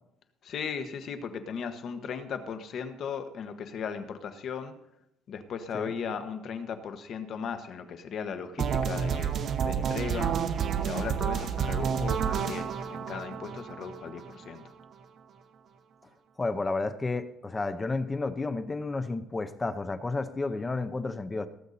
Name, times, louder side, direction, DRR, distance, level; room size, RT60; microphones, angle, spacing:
voice 1, 0.4-4.7 5.3-10.5 10.8-14.6, left 6 dB, 45° left, 9 dB, 1.2 m, -37 dB
sound 1, 8.6-14.6, right 7 dB, 40° right, 0.9 m, -30 dB
voice 2, 16.4-21.5, left 3 dB, 15° left, 11 dB, 0.6 m, -31 dB
18.5 x 8.0 x 4.1 m, 0.84 s
cardioid pair, 155°, 0 cm